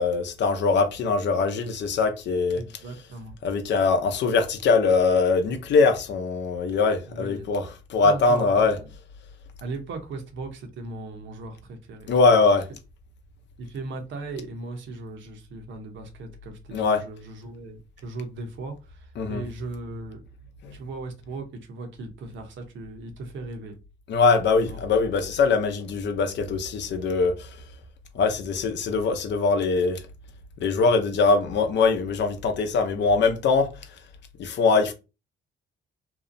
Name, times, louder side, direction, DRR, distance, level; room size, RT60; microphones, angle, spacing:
voice 1, 0.0-2.6 3.4-8.8 12.1-12.7 16.7-17.0 19.2-19.4 20.6-20.7 24.1-27.6 28.1-30.0 30.6-33.7 34.4-34.9, left 4 dB, 65° left, 0.6 m, -22 dB
voice 2, 2.5-3.3 7.1-7.5 8.0-8.9 9.6-12.4 13.6-20.2 20.7-23.8 24.7-24.8, right 3 dB, 70° right, 0.8 m, -38 dB
2.7 x 2.0 x 2.5 m
cardioid pair, 90°, 20 cm